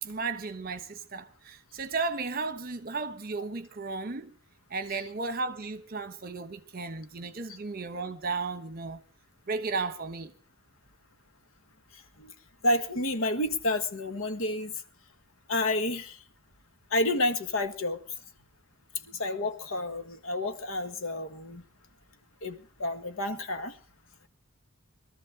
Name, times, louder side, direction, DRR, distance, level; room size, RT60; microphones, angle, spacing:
voice 1, 0.0-4.3 4.7-9.0 9.5-10.3, right 4 dB, 45° right, 1.2 m, -34 dB
voice 2, 12.6-14.7 15.5-16.2 16.9-18.0 19.1-21.6 22.4-23.8, left 1 dB, 75° left, 1.6 m, -30 dB
21.5 x 13.5 x 3.8 m
head